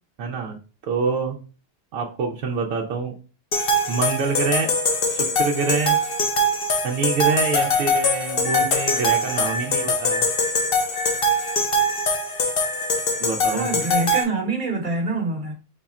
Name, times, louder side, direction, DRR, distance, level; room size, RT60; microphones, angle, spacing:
voice 1, 0.2-0.6 0.8-1.4 1.9-3.1 3.9-4.7 5.1-6.0 6.8-10.2 13.2-13.8, right 4 dB, 80° right, 1.1 m, -26 dB
sound 1, 3.5-14.2, left 1 dB, 50° left, 0.9 m, -22 dB
sound 2, 8.4-13.3, left 2 dB, 80° left, 1.1 m, -33 dB
voice 2, 13.5-15.5, right 3 dB, 40° right, 1.2 m, -25 dB
5.0 x 2.4 x 4.1 m
omnidirectional pair, 1.3 m